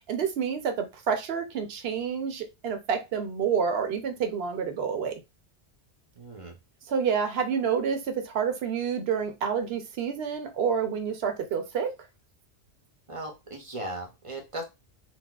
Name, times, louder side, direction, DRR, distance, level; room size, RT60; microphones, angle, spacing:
voice 1, 0.0-5.2 6.9-11.9, right 6 dB, 65° right, 6 dB, 0.8 m, -28 dB
voice 2, 6.2-6.6 13.1-14.6, right 1 dB, 35° right, 2 dB, 0.6 m, -37 dB
4.0 x 2.1 x 2.3 m, 0.24 s
omnidirectional pair, 1.2 m